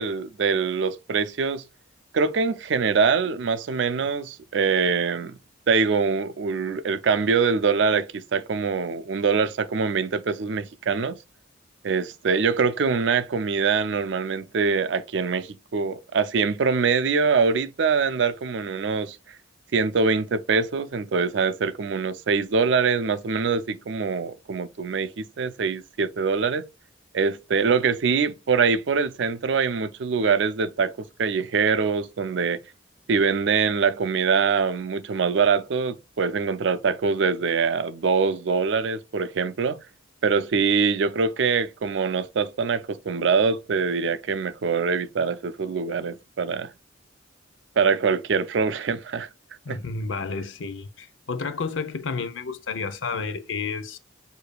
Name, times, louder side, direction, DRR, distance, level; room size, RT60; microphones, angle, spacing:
voice 1, 0.0-1.6 2.1-5.4 5.7-11.2 11.8-19.2 19.7-26.6 27.1-32.6 33.1-39.8 40.2-46.7 47.8-49.3 49.7-49.8, right 5 dB, 75° right, 0.4 m, -24 dB
voice 2, 49.7-54.0, left 4 dB, 90° left, 0.6 m, -31 dB
6.6 x 2.7 x 2.2 m
head